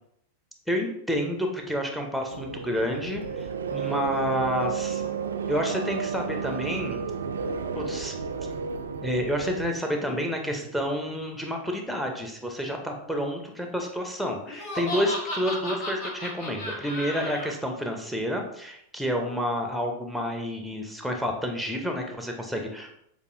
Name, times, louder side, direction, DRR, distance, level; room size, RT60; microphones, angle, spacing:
voice 1, 0.7-5.0 5.5-7.0 7.7-8.1 9.0-22.9, equal, ahead, 2 dB, 0.8 m, -29 dB
sound 1, 2.3-9.7, right 6 dB, 70° right, 0.4 m, -32 dB
Laughter, 14.5-17.5, left 1 dB, 45° left, 1.1 m, -34 dB
6.5 x 2.6 x 2.6 m, 0.72 s
figure-of-eight pair, 90°, 0 cm